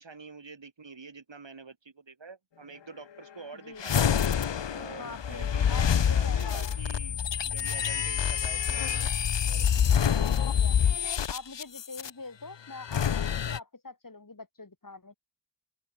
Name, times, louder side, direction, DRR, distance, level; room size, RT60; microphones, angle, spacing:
voice 1, 0.0-4.2 4.7-7.2 7.4-9.0 9.5-10.2, right 4 dB, 90° right, 4.0 m, -47 dB
sound 1, 3.8-12.1 12.8-13.6, left 8 dB, 80° left, 0.8 m, -27 dB
voice 2, 5.0-6.7 10.4-10.8 11.3-15.2, left 3 dB, 50° left, 3.6 m, -44 dB
open air
wide cardioid pair, 65°, 43 cm